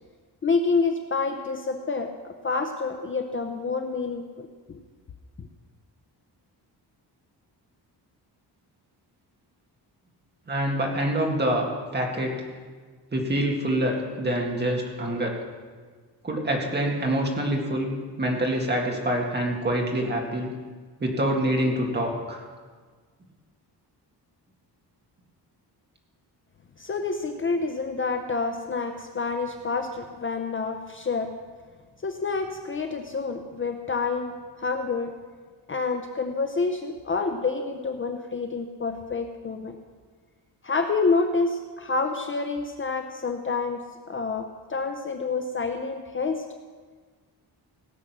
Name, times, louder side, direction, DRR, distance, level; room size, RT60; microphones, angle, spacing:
voice 1, 0.4-2.1 2.4-4.8 26.8-31.3 32.0-35.1 35.7-39.8 40.6-43.8 44.1-46.4, left 4 dB, 30° left, 5 dB, 0.7 m, -28 dB
voice 2, 10.5-12.4 13.1-15.4 16.2-20.5 21.0-22.4, right 1 dB, 25° right, 0 dB, 2.0 m, -26 dB
17.5 x 7.5 x 6.0 m, 1.5 s
wide cardioid pair, 155°, 41 cm